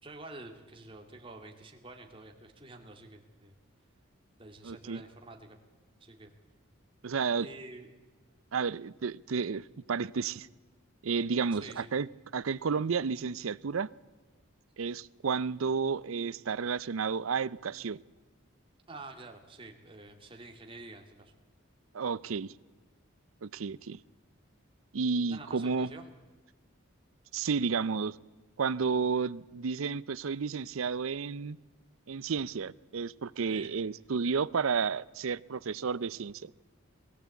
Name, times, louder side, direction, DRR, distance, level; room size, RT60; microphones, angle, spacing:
voice 1, 0.0-3.6 4.4-5.6 6.0-6.3 7.3-7.9 11.5-11.9 18.9-21.3 25.3-26.1 33.5-33.7, right 2 dB, 25° right, 2.1 m, -48 dB
voice 2, 4.6-5.0 7.0-7.5 8.5-10.5 11.0-12.1 12.3-13.9 14.8-18.0 21.9-22.5 23.4-24.0 24.9-25.9 27.3-28.1 28.6-31.6 32.1-36.5, right 5 dB, 80° right, 0.5 m, -31 dB
21.5 x 15.0 x 8.3 m
head